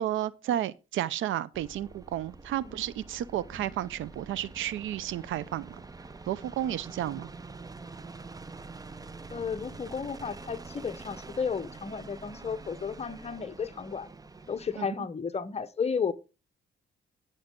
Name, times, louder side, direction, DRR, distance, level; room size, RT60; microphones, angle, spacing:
voice 1, 0.0-5.8 6.3-7.3 14.8-14.9, right 12 dB, 80° right, 0.6 m, -32 dB
sound 1, 1.5-14.8, right 3 dB, 20° right, 0.7 m, -46 dB
voice 2, 9.3-14.1 14.5-16.1, left 6 dB, 30° left, 1.0 m, -33 dB
15.5 x 6.4 x 3.8 m
cardioid pair, 90°, 20 cm